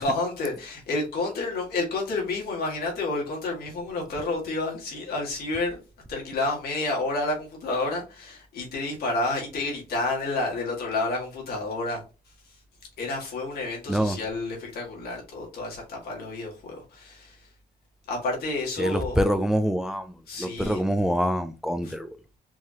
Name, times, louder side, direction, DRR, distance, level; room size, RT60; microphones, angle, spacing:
voice 1, 0.0-5.8 6.1-12.0 12.5-12.6 13.0-17.5 18.1-19.2 20.3-20.8 21.8-21.9, left 2 dB, 75° left, 2.0 m, -30 dB
voice 2, 18.8-22.2, equal, 5° right, 0.4 m, -25 dB
4.6 x 2.9 x 2.8 m
cardioid pair, 100°, 16 cm